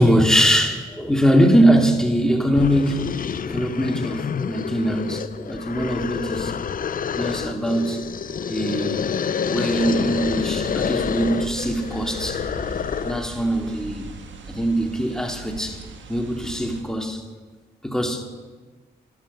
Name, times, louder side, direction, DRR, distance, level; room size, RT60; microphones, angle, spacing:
voice 1, 0.0-3.2 3.4-6.5 7.1-8.0 8.4-9.0 9.5-12.4 13.0-14.1 14.5-15.8 16.1-17.2 17.8-18.2, equal, 5° left, 3 dB, 2.5 m, -21 dB
sound 1, 2.1-2.2 2.5-13.3, left 7 dB, 45° left, 0.5 m, -28 dB
sound 2, 9.8-16.8, right 4 dB, 70° right, 1.6 m, -39 dB
14.5 x 10.5 x 5.4 m, 1.3 s
supercardioid pair, 55°, 20 cm